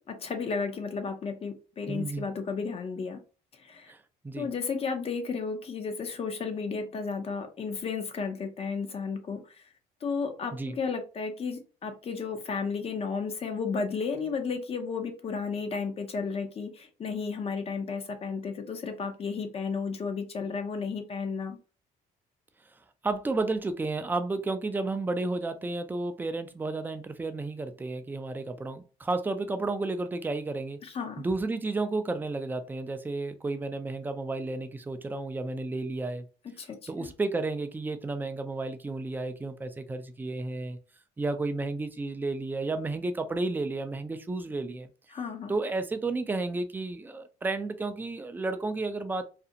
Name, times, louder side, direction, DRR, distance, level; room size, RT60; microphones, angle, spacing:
voice 1, 0.0-3.2 3.6-3.9 4.4-9.7 10.0-21.6 30.8-31.2 36.4-37.1 45.1-45.5, left 5 dB, 35° left, 6 dB, 0.6 m, -33 dB
voice 2, 1.9-2.3 3.9-4.0 4.2-4.5 10.5-10.8 23.0-30.8 31.2-36.3 36.9-40.8 41.2-44.9 45.5-49.2, right 3 dB, 10° right, 8 dB, 0.3 m, -32 dB
2.4 x 2.0 x 2.7 m, 0.35 s
cardioid pair, 100°, 17 cm